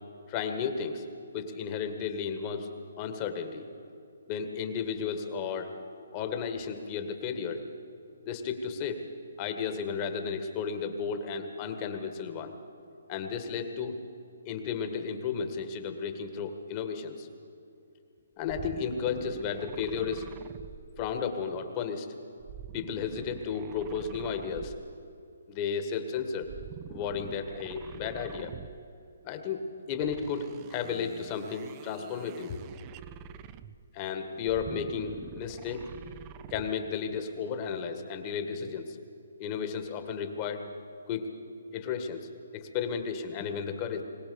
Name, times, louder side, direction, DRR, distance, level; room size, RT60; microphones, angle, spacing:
voice 1, 0.3-1.0 1.3-2.7 3.0-3.6 4.3-5.7 6.1-7.6 8.3-9.1 9.4-12.5 13.1-14.0 14.5-17.3 18.4-20.3 21.0-22.1 22.7-24.7 25.5-26.5 26.9-28.5 29.2-32.6 33.9-36.2 36.5-39.0 39.4-40.6 41.1-41.3 41.7-42.3 42.5-44.0, left 6 dB, 30° left, 7 dB, 1.8 m, -33 dB
sound 1, 18.4-21.5 22.4-25.1 26.4-29.0 29.9-33.9 34.4-36.9, right 10 dB, 30° right, 0.6 m, -46 dB
22.0 x 18.5 x 7.0 m, 2.5 s
hypercardioid pair, 145°, 0 cm